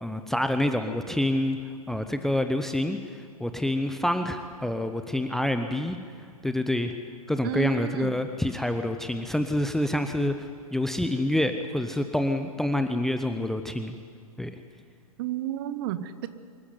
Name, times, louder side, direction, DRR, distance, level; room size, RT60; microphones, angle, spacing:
voice 1, 0.0-1.6 1.9-6.0 6.4-6.9 7.3-14.0 14.4-14.5, left 1 dB, ahead, 8 dB, 0.7 m, -27 dB
voice 2, 7.4-8.1 15.2-16.3, right 13 dB, 40° right, 12 dB, 1.1 m, -31 dB
25.0 x 14.5 x 9.5 m, 2.3 s
figure-of-eight pair, 115°, 19 cm